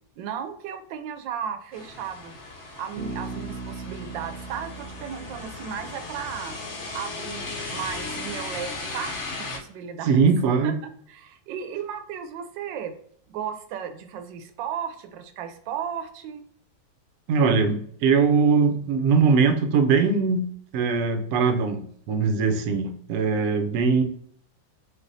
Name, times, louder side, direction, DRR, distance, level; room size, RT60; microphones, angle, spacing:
voice 1, 0.2-2.3 2.8-6.5 6.9-10.2 10.6-10.7 11.1-12.9 13.3-16.4, right 8 dB, 85° right, 1.3 m, -35 dB
sound 1, 1.7-9.6, left 3 dB, 50° left, 0.9 m, -36 dB
Bass guitar, 3.0-6.6, right 4 dB, 30° right, 0.8 m, -39 dB
voice 2, 10.0-10.7 17.3-24.0, right 5 dB, 65° right, 0.9 m, -21 dB
4.3 x 3.4 x 2.6 m
omnidirectional pair, 2.0 m